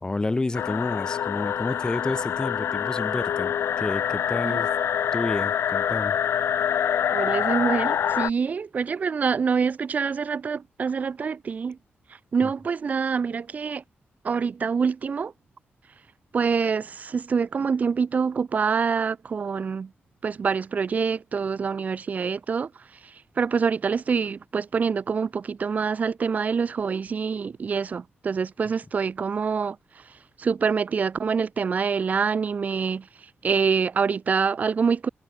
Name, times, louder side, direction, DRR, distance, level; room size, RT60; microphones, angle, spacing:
voice 1, 0.0-4.7 5.1-6.1 12.4-12.5, left 2 dB, 20° left, 1.5 m, -30 dB
sound 1, 0.5-8.3, left 9 dB, 80° left, 0.4 m, -26 dB
voice 2, 7.1-11.8 12.3-13.8 14.2-15.3 16.3-19.9 20.2-22.7 23.0-30.0 30.4-33.1 33.4-35.1, right 5 dB, 40° right, 0.4 m, -26 dB
wide cardioid pair, 155°, 4 cm